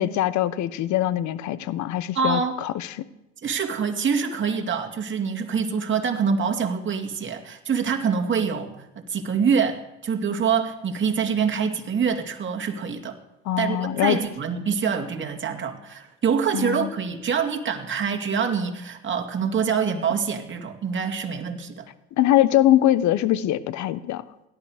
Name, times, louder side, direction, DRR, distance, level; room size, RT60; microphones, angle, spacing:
voice 1, 0.0-2.9 13.5-14.2 16.5-16.9 22.2-24.2, left 12 dB, 60° left, 16 dB, 1.0 m, -22 dB
voice 2, 2.1-2.5 3.4-13.2 13.6-21.8, right 6 dB, 35° right, 3 dB, 2.4 m, -25 dB
17.5 x 12.0 x 5.0 m, 0.90 s
supercardioid pair, 75°, 32 cm